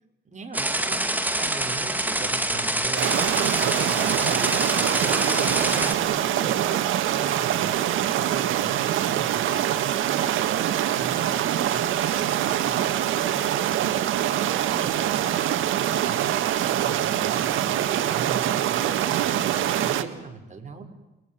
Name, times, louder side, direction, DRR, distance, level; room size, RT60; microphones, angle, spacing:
voice 1, 0.3-1.0 1.4-3.1 3.5-11.4 11.7-16.2 16.6-20.8, right 4 dB, 35° right, 4 dB, 5.6 m, -39 dB
sound 1, 0.5-5.9, right 1 dB, 10° right, 2.8 m, -26 dB
sound 2, 3.0-20.0, right 11 dB, 80° right, 1.9 m, -24 dB
29.5 x 21.5 x 9.4 m, 1.0 s
cardioid pair, 90°, 20 cm